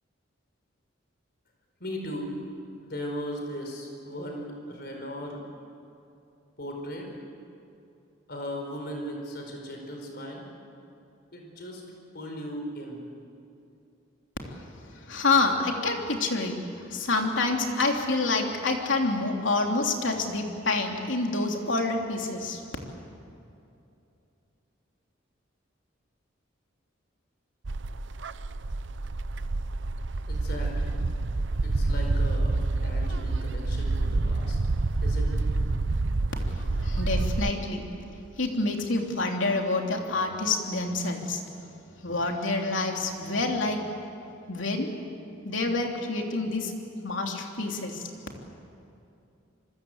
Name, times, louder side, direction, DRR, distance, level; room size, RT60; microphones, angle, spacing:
voice 1, 1.8-2.3 2.8-5.4 6.6-7.1 8.3-10.5 11.3-11.8 12.1-13.0 30.3-31.0 31.6-34.6 35.0-35.4, equal, 55° left, 2 dB, 5.0 m, -37 dB
voice 2, 14.9-22.6 36.4-41.4 42.0-43.8 44.5-44.9 45.4-46.7 47.0-48.1, left 3 dB, 80° left, 2 dB, 3.2 m, -28 dB
sound 1, 27.6-37.5, right 2 dB, 70° right, 0.7 m, -28 dB
26.5 x 24.0 x 8.1 m, 2.6 s
head